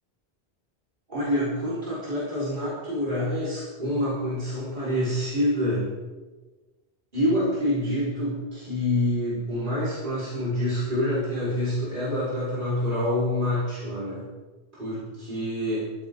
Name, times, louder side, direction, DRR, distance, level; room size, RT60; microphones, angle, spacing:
voice 1, 1.1-5.9 7.1-14.3 14.7-15.9, left 1 dB, 50° right, -9 dB, 5.4 m, -27 dB
17.0 x 14.5 x 3.9 m, 1.2 s
omnidirectional pair, 1.1 m